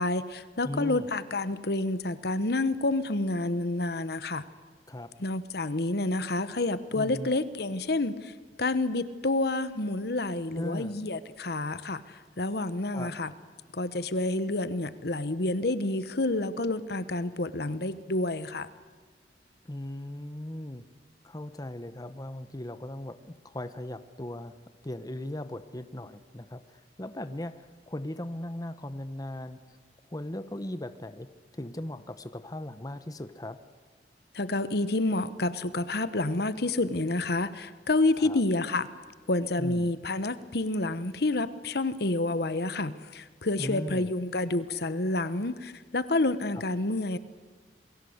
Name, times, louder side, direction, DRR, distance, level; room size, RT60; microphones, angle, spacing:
voice 1, 0.0-4.4 5.2-13.3 13.7-18.7 34.3-38.9 39.3-47.2, left 2 dB, 65° left, 14 dB, 1.1 m, -29 dB
voice 2, 0.6-1.1 4.9-5.1 6.9-7.3 10.6-11.0 12.9-13.1 19.6-20.8 21.2-24.5 24.8-29.6 30.1-31.3 31.5-33.6 38.2-38.4 39.6-39.9 43.6-44.1, left 1 dB, 20° left, 11 dB, 1.0 m, -38 dB
28.0 x 22.5 x 8.0 m, 1.5 s
head